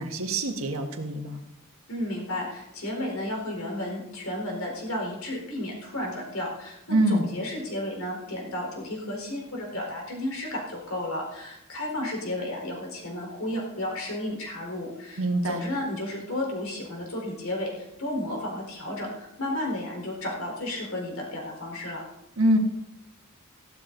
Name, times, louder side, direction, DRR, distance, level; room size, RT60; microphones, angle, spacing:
voice 1, 0.0-1.4 6.9-7.3 15.2-15.6 22.4-22.6, right 1 dB, 70° right, 4 dB, 1.6 m, -24 dB
voice 2, 1.9-22.0, left 1 dB, 70° left, 0 dB, 4.2 m, -33 dB
15.0 x 12.0 x 4.0 m, 0.84 s
head